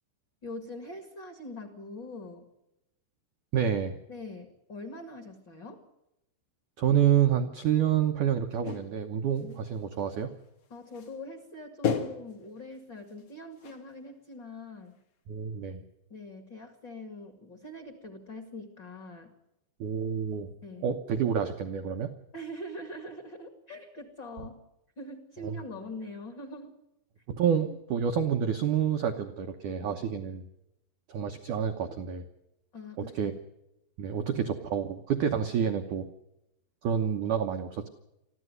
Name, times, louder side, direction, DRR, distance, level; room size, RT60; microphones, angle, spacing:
voice 1, 0.4-2.5 4.1-5.8 8.6-8.9 9.4-9.7 10.7-15.0 16.1-19.3 20.6-20.9 22.3-24.6 25.0-26.7 32.7-33.3 34.2-34.5, left 1 dB, 40° left, 6 dB, 1.8 m, -43 dB
voice 2, 3.5-4.0 6.8-10.3 15.3-15.8 19.8-20.5 20.8-22.1 25.4-25.6 27.3-30.4 31.1-32.3 33.2-33.3 34.0-36.1 36.8-37.9, right 8 dB, 85° right, 6 dB, 1.7 m, -28 dB
sound 1, 8.6-9.0 9.3-9.8 10.3-10.4 10.6-11.2 11.8-14.3, left 7 dB, 55° left, 1.8 m, -34 dB
24.0 x 15.0 x 7.9 m, 0.89 s
omnidirectional pair, 5.2 m